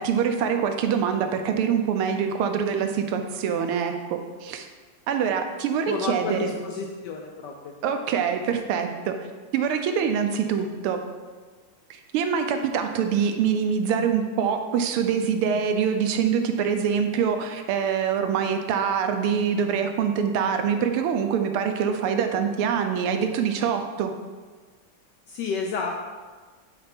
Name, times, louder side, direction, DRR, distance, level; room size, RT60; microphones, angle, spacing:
voice 1, 0.0-4.7 5.1-6.5 7.8-9.2 9.5-11.0 11.9-24.1, right 7 dB, 90° right, 6 dB, 1.6 m, -25 dB
voice 2, 5.9-7.7 25.3-26.1, left 5 dB, 75° left, 1 dB, 1.0 m, -31 dB
5.8 x 4.4 x 5.1 m, 1.5 s
omnidirectional pair, 2.4 m